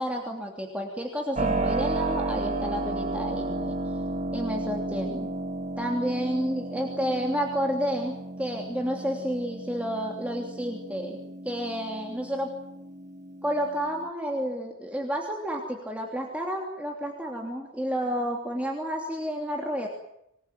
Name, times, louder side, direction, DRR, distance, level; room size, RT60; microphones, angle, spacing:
voice 1, 0.0-3.7 4.3-5.3 5.8-11.2 11.4-12.5 13.4-19.9, equal, 5° right, 1 dB, 3.1 m, -30 dB
Keyboard (musical), 1.4-14.1, right 2 dB, 35° right, 1.9 m, -33 dB
26.5 x 21.0 x 9.2 m, 0.79 s
head